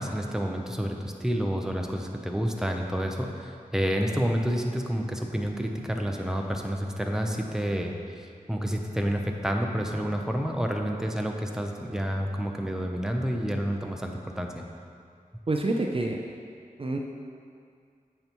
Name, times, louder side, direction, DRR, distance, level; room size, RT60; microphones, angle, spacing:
voice 1, 0.0-14.7, equal, 5° right, 2 dB, 0.7 m, -29 dB
voice 2, 15.5-16.2 16.8-17.0, right 2 dB, 40° right, 1 dB, 0.5 m, -27 dB
8.7 x 5.7 x 3.1 m, 2.3 s
cardioid pair, 45°, 14 cm